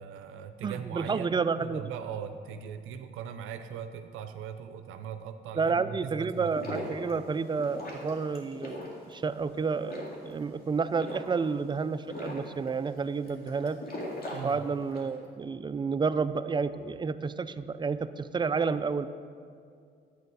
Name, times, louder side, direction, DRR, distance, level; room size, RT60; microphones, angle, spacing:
voice 1, 0.0-6.9 14.3-14.6, right 8 dB, 85° right, 8 dB, 0.5 m, -40 dB
voice 2, 0.6-1.8 5.6-13.8 14.4-19.1, right 5 dB, 25° right, 12 dB, 0.4 m, -30 dB
sound 1, 6.3-15.1, left 1 dB, 50° left, 2.2 m, -41 dB
9.4 x 8.5 x 4.7 m, 2.3 s
cardioid pair, 90°, 20 cm